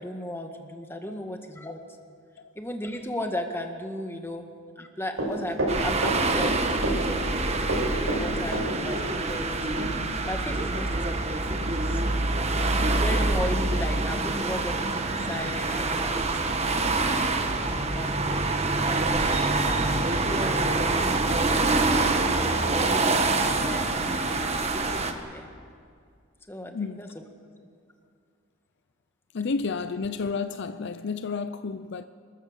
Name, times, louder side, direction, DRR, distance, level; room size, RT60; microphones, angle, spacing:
voice 1, 0.0-1.8 2.5-7.2 8.1-12.0 12.7-19.8 20.2-22.0 22.7-25.5 26.5-27.1, left 1 dB, 10° left, 1.5 m, -36 dB
Run, 5.2-6.6 6.8-7.4 7.7-9.0 9.3-9.4 9.8-9.9, right 1 dB, 70° right, 5.4 m, -28 dB
sound 1, 5.7-25.1, right 2 dB, 30° right, 1.3 m, -26 dB
voice 2, 29.3-32.0, left 4 dB, 55° left, 0.5 m, -31 dB
26.5 x 13.5 x 7.4 m
head